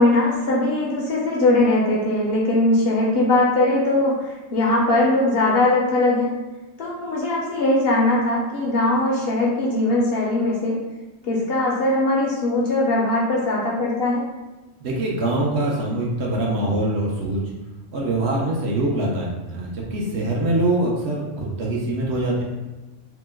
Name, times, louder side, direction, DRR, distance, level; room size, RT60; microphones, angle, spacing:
voice 1, 0.0-6.3 6.8-10.8 11.2-14.2, left 2 dB, 60° left, -3 dB, 0.7 m, -20 dB
voice 2, 14.8-17.4 17.9-22.4, right 1 dB, 65° right, -2 dB, 0.8 m, -23 dB
2.9 x 2.1 x 3.3 m, 1.1 s
omnidirectional pair, 1.3 m